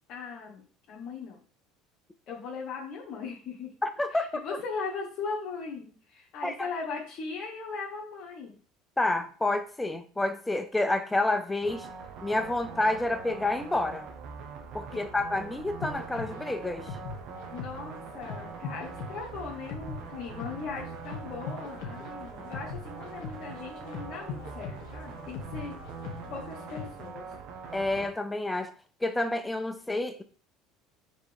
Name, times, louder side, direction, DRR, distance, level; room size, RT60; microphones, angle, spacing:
voice 1, 0.1-1.4 2.3-3.7 4.1-8.5 14.9-15.1 17.5-25.8 26.3-27.3, left 4 dB, 55° left, 1.1 m, -39 dB
voice 2, 3.8-4.4 6.4-6.7 9.0-11.9 12.2-14.1 14.7-17.0 27.7-28.7 29.0-30.2, left 2 dB, 10° left, 0.3 m, -29 dB
sound 1, 11.6-28.1, right 5 dB, 60° right, 0.8 m, -43 dB
sound 2, 15.8-27.1, left 5 dB, 70° left, 1.3 m, -42 dB
5.3 x 3.0 x 3.4 m
supercardioid pair, 100°, 0 cm